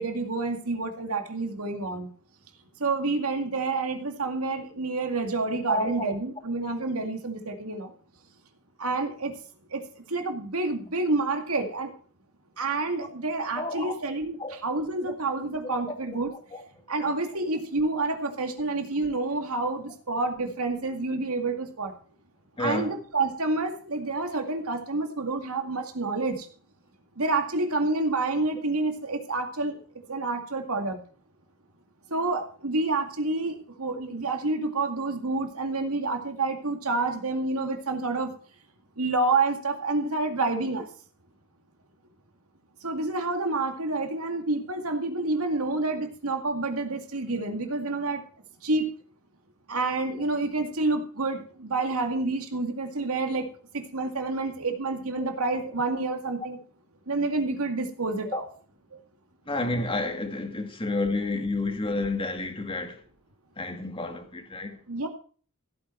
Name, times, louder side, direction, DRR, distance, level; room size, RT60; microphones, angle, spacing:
voice 1, 0.0-2.1 2.8-7.9 8.8-9.3 9.7-11.9 12.6-16.3 16.9-21.9 22.6-26.5 27.2-29.8 30.1-31.0 32.1-38.3 39.0-40.9 42.8-48.2 48.6-48.9 49.7-53.5 53.7-56.6 57.1-58.4 64.9-65.1, right 3 dB, 85° right, 2.2 m, -28 dB
voice 2, 5.7-6.1 13.0-13.1 13.6-13.9 14.4-14.6 15.0-15.2 15.6-15.8 16.5-16.6 22.6-22.9 58.3-58.4 59.5-63.0 63.6-64.8, left 2 dB, 25° left, 2.2 m, -30 dB
15.5 x 8.6 x 4.6 m
head